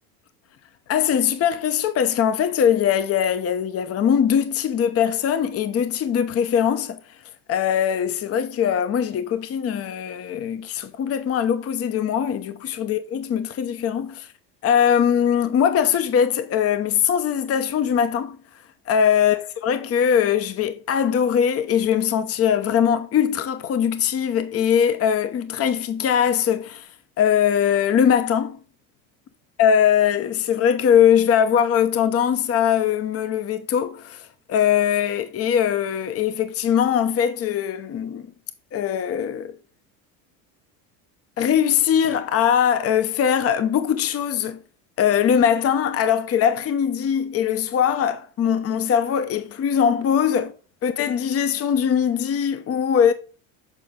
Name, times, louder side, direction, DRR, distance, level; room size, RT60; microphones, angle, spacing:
voice 1, 0.9-7.0 7.5-14.3 14.6-18.4 18.9-26.9 27.2-28.6 29.6-38.3 38.7-39.6 41.4-44.6 45.0-50.5 50.8-53.1, left 8 dB, 35° left, 0.8 m, -21 dB
7.6 x 4.2 x 3.7 m
supercardioid pair, 100°, 41 cm